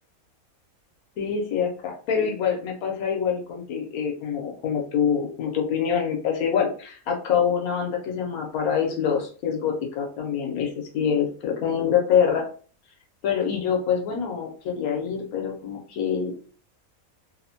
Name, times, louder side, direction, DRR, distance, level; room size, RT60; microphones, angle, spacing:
voice 1, 1.2-12.5 13.2-16.3, left 7 dB, 90° left, 1 dB, 1.2 m, -25 dB
3.0 x 2.1 x 2.6 m, 0.41 s
omnidirectional pair, 1.5 m